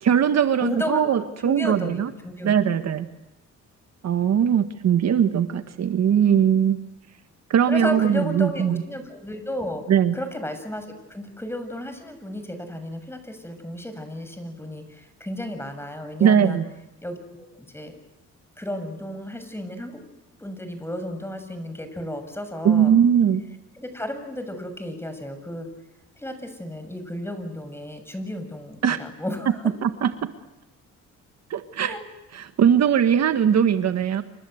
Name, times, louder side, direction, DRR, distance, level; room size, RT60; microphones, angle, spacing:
voice 1, 0.0-2.1 2.4-3.1 4.0-6.8 7.5-8.8 9.9-10.2 16.2-16.6 22.6-23.4 28.8-29.0 29.8-30.3 31.5-31.9 32.3-34.2, right 8 dB, 60° right, 9 dB, 1.6 m, -20 dB
voice 2, 0.6-1.0 1.4-2.9 7.7-9.9 10.1-16.6 17.0-18.0 18.6-20.0 20.4-23.0 23.8-25.7 26.2-29.6 31.8-32.0, left 1 dB, 10° left, 8 dB, 6.9 m, -33 dB
28.5 x 26.0 x 8.1 m, 0.94 s
cardioid pair, 90°, 30 cm